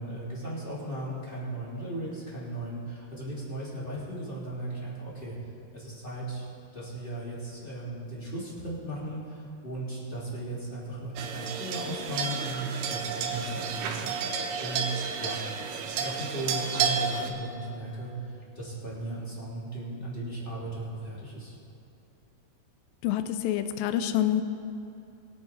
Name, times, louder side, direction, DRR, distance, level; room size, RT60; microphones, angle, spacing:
voice 1, 0.0-5.4 5.7-6.4 6.7-15.4 15.8-21.6, right 1 dB, 15° left, -7 dB, 2.9 m, -36 dB
sound 1, 11.2-17.3, right 6 dB, 90° right, 2.9 m, -31 dB
voice 2, 23.0-24.4, left 11 dB, 85° left, 9 dB, 2.1 m, -27 dB
23.0 x 8.3 x 4.5 m, 2.8 s
omnidirectional pair, 4.6 m